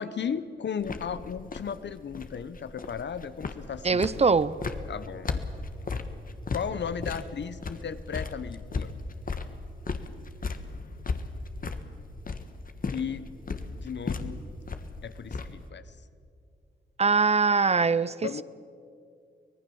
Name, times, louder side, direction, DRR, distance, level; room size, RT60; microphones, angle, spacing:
voice 1, 0.0-4.2 4.9-5.4 6.5-8.9 12.9-13.3 13.7-14.4 15.0-15.9 18.2-18.4, left 7 dB, 65° left, 1.0 m, -35 dB
sound 1, 0.8-15.7, left 4 dB, 45° left, 1.4 m, -36 dB
voice 2, 3.8-4.5 17.0-18.4, right 4 dB, 35° right, 0.6 m, -23 dB
24.5 x 18.5 x 7.1 m
cardioid pair, 85°, 20 cm